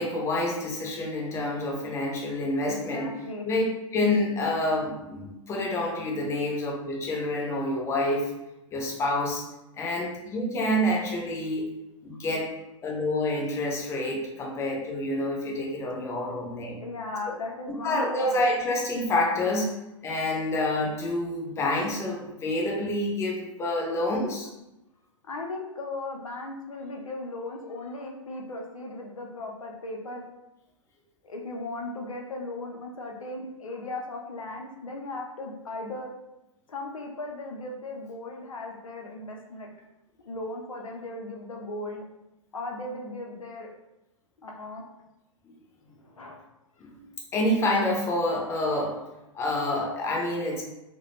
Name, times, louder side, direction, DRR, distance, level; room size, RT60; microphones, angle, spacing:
voice 1, 0.0-3.1 3.5-3.6 3.9-8.3 8.7-9.4 9.8-11.7 12.0-12.5 12.8-16.8 17.8-19.7 20.0-24.5 46.8-47.0 47.3-49.0 49.3-50.6, left 1 dB, 15° left, -2 dB, 0.6 m, -27 dB
voice 2, 2.7-3.4 16.8-18.4 25.3-30.2 31.2-36.1 36.7-39.7 40.2-42.0 42.5-43.7 44.4-44.8 46.0-46.4, left 2 dB, 75° left, 1 dB, 0.6 m, -37 dB
2.3 x 2.1 x 3.0 m, 0.93 s
figure-of-eight pair, 105°, 17 cm